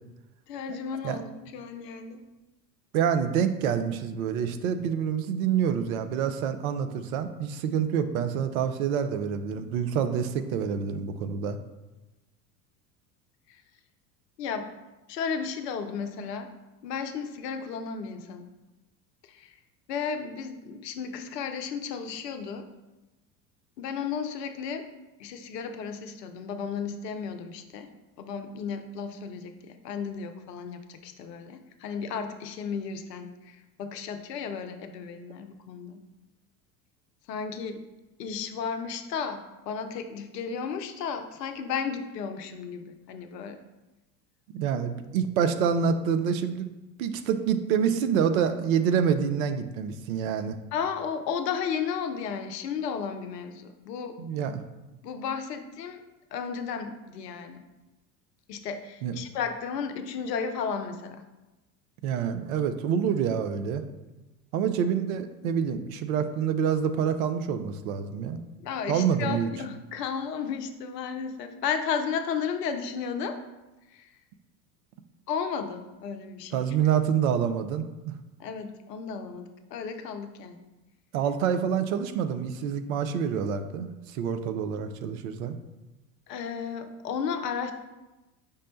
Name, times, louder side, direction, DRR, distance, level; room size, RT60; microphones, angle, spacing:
voice 1, 0.5-2.2 13.5-13.6 14.4-14.7 15.1-16.5 16.8-18.5 19.2-19.6 19.9-22.7 23.8-24.9 25.2-27.9 28.2-36.0 37.3-37.8 38.2-43.6 50.7-54.1 55.0-56.0 56.3-57.6 58.5-61.2 68.6-73.4 73.9-74.1 75.3-76.6 78.4-80.6 86.3-87.7, left 6 dB, 75° left, 7 dB, 0.6 m, -34 dB
voice 2, 2.9-11.6 44.5-46.7 47.0-50.6 54.2-54.6 59.0-59.1 62.0-63.8 64.5-68.4 68.9-69.5 76.5-78.2 81.1-85.5, right 7 dB, 60° right, 9 dB, 0.5 m, -27 dB
5.2 x 2.1 x 3.9 m, 1.1 s
figure-of-eight pair, 75°, 50 cm